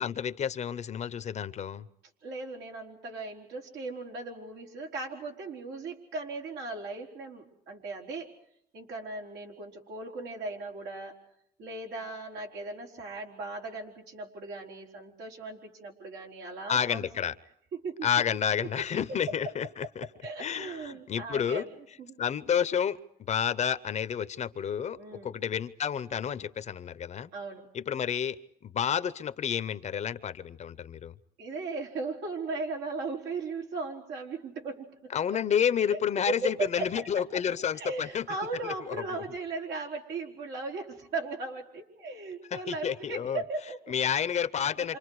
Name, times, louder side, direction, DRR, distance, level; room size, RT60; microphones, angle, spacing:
voice 1, 0.0-1.9 16.7-17.3 18.0-20.1 20.4-21.7 22.2-27.3 27.7-31.1 35.1-38.3 38.6-39.2 42.5-43.4 43.9-45.0, left 8 dB, 40° left, 15 dB, 0.8 m, -30 dB
voice 2, 2.2-8.3 8.7-11.2 11.6-17.1 17.7-18.1 19.1-19.2 20.2-21.7 22.0-22.2 24.9-25.4 27.3-27.7 31.4-35.1 35.9-36.0 36.3-37.1 37.8-43.8 44.8-44.9, right 3 dB, 80° right, 0 dB, 4.6 m, -37 dB
28.5 x 26.5 x 4.8 m, 0.75 s
cardioid pair, 110°, 17 cm